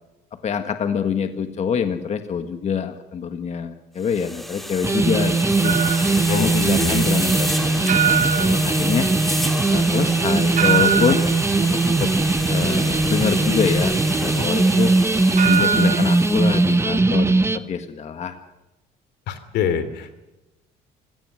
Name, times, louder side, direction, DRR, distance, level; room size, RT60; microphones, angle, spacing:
voice 1, 0.4-5.8 6.3-9.1 9.7-11.2 11.6-12.1 12.5-13.9 14.2-14.9 15.4-18.4, left 7 dB, 40° left, 7 dB, 1.7 m, -25 dB
sound 1, 4.0-16.8, equal, ahead, 2.4 m, -30 dB
sound 2, 4.8-17.6, right 3 dB, 15° right, 1.3 m, -20 dB
sound 3, 5.6-17.0, right 8 dB, 50° right, 6.2 m, -26 dB
voice 2, 6.3-7.3 19.3-20.1, left 7 dB, 80° left, 12 dB, 3.0 m, -26 dB
26.5 x 17.5 x 6.4 m, 1.0 s
cardioid pair, 110°, 17 cm